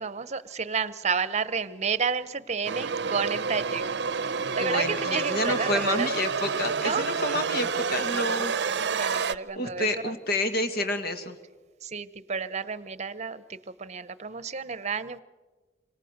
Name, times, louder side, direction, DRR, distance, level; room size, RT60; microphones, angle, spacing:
voice 1, 0.0-3.9 4.6-6.1 6.8-7.1 9.0-10.1 11.8-15.2, right 5 dB, 40° right, 16 dB, 0.9 m, -31 dB
sound 1, 2.6-9.3, right 5 dB, 70° right, 0.7 m, -29 dB
voice 2, 4.6-8.6 9.6-11.4, left 1 dB, 60° left, 8 dB, 2.2 m, -29 dB
26.5 x 26.0 x 6.6 m, 1.3 s
head